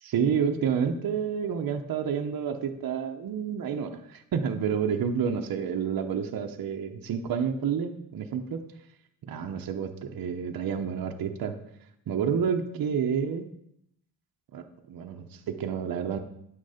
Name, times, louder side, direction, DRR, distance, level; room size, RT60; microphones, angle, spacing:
voice 1, 0.0-8.7 9.2-11.5 12.1-13.5 14.5-16.2, right 7 dB, 65° right, 4 dB, 0.9 m, -29 dB
9.7 x 6.4 x 5.7 m, 0.75 s
cardioid pair, 125°, 38 cm